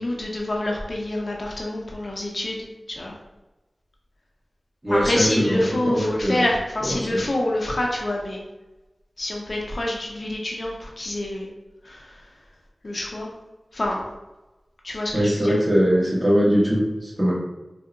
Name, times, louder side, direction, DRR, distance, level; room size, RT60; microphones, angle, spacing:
voice 1, 0.0-3.1 4.9-8.4 9.2-11.5 11.8-12.2 12.8-13.3 13.7-14.0 14.8-15.6, left 1 dB, 55° left, -1 dB, 0.5 m, -27 dB
voice 2, 4.8-6.4 6.8-7.2 15.1-17.3, equal, 20° right, -5 dB, 1.0 m, -21 dB
3.6 x 2.0 x 2.5 m, 1.0 s
wide cardioid pair, 65°, 0 cm